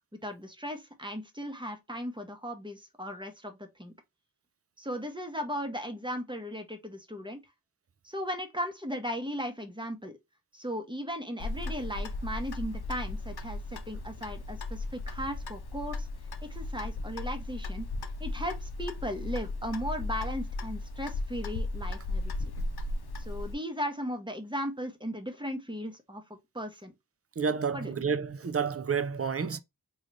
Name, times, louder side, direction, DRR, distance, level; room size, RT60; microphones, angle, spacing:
voice 1, 0.2-3.9 4.8-7.4 8.0-10.2 10.5-16.1 16.4-17.9 18.2-22.3 23.2-26.9 27.7-28.1, equal, 15° right, 0.8 m, -37 dB
Clock, 11.4-23.5, left 2 dB, 85° left, 0.5 m, -36 dB
voice 2, 27.4-29.6, right 6 dB, 40° right, 0.5 m, -30 dB
3.8 x 2.4 x 3.1 m
wide cardioid pair, 40°, 37 cm